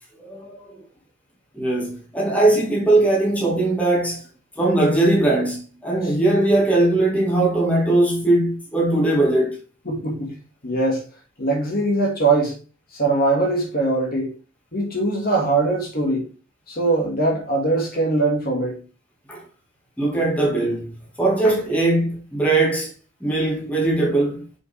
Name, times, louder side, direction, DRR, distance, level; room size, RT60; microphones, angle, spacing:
voice 1, 0.2-0.7 1.5-4.2 4.6-9.6 19.3-19.4 20.0-22.9 23.2-24.4, right 2 dB, 5° left, 1.8 m, -20 dB
voice 2, 9.9-10.3 10.6-11.0 11.4-12.6 12.9-14.3 14.7-16.3 16.7-18.8, right 2 dB, 45° left, 2.0 m, -21 dB
5.9 x 4.9 x 3.4 m
head